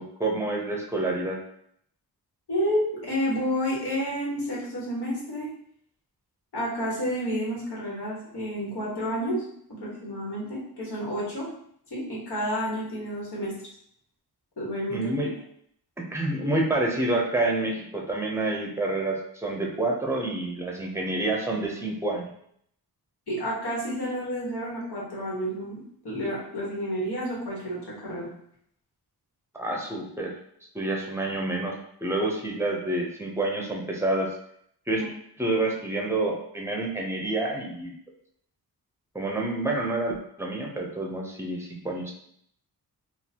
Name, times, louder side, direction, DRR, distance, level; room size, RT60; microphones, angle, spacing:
voice 1, 0.0-1.4 14.9-15.3 16.1-22.3 29.5-30.3 30.7-34.3 34.9-35.0 35.4-37.9 39.1-42.1, right 2 dB, 5° right, -1 dB, 0.6 m, -28 dB
voice 2, 2.5-5.5 6.5-9.4 9.7-11.5 11.9-13.5 14.6-15.0 23.3-28.3 35.0-35.1, equal, 90° left, -6 dB, 1.5 m, -30 dB
3.8 x 2.5 x 2.8 m, 0.68 s
wide cardioid pair, 140°, 38 cm